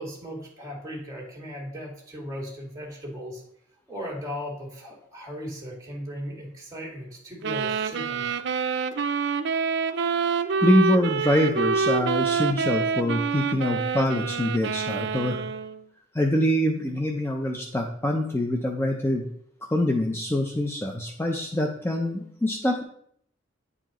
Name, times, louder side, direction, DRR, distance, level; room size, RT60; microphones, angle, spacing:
voice 1, 0.0-3.4 3.9-8.3, equal, 20° right, -3 dB, 2.1 m, -37 dB
sound 1, 7.4-15.8, right 5 dB, 65° right, 0.5 m, -27 dB
voice 2, 10.6-15.4 16.1-19.3 19.6-22.8, left 1 dB, 15° left, 1 dB, 0.5 m, -25 dB
9.7 x 4.7 x 3.0 m, 0.66 s
head